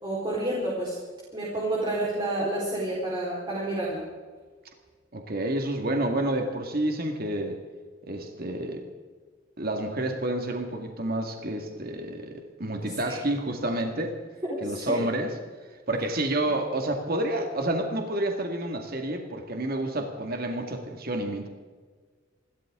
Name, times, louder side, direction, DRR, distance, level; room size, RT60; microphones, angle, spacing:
voice 1, 0.0-1.0 1.3-4.0 12.8-13.2 14.4-15.0, right 1 dB, 25° right, -5 dB, 4.4 m, -29 dB
voice 2, 5.1-7.6 8.1-8.8 9.6-14.2 14.6-15.3 15.9-21.5, right 1 dB, 55° right, 4 dB, 2.0 m, -29 dB
28.0 x 13.0 x 3.8 m, 1.5 s
head